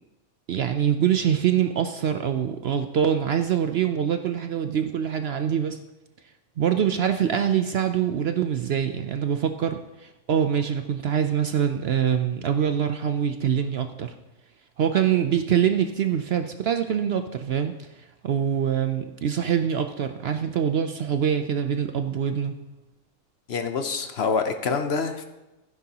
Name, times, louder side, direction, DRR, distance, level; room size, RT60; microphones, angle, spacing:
voice 1, 0.5-5.8 6.6-14.1 14.8-22.5, right 8 dB, 60° right, 8 dB, 0.7 m, -24 dB
voice 2, 23.5-25.2, left 5 dB, 55° left, 7 dB, 0.9 m, -26 dB
15.5 x 9.9 x 2.9 m, 1.0 s
omnidirectional pair, 1.4 m